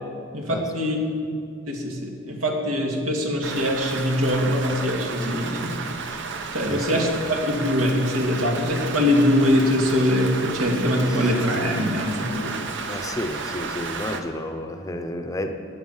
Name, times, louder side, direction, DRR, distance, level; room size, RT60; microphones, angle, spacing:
voice 1, 0.3-1.0 1.7-5.8 6.5-12.5, left 1 dB, 90° right, 0 dB, 2.3 m, -23 dB
Rain, 3.4-14.2, right 4 dB, 60° right, 0.9 m, -33 dB
voice 2, 6.6-7.2 11.1-11.3 12.9-15.5, left 1 dB, 15° left, 6 dB, 0.7 m, -31 dB
16.0 x 9.5 x 5.6 m, 2.4 s
head